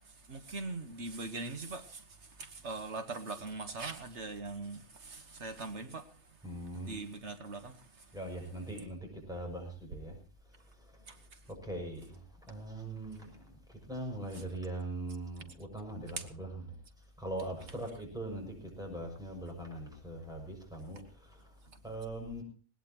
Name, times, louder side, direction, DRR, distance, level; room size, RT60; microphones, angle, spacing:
voice 1, 0.0-8.1 11.1-11.4 16.2-16.3 21.7-21.8, right 3 dB, 70° right, 1.7 m, -42 dB
voice 2, 6.4-7.0 8.1-10.2 10.8-11.2 11.5-16.7 17.2-22.4, right 1 dB, 5° right, 6.7 m, -41 dB
20.0 x 19.5 x 3.0 m
omnidirectional pair, 1.2 m